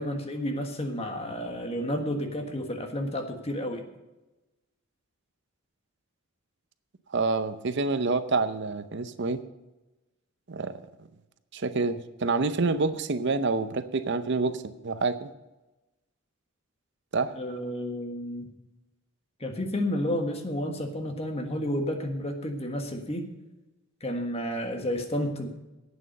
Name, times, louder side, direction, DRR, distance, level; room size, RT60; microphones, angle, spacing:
voice 1, 0.0-3.8 17.3-18.5 19.4-23.3 24.0-25.5, equal, 30° left, 4 dB, 1.5 m, -31 dB
voice 2, 7.1-9.4 10.5-10.7 11.5-15.3 17.1-17.3, right 3 dB, 55° right, 11 dB, 0.6 m, -27 dB
11.0 x 8.7 x 6.5 m, 1.0 s
head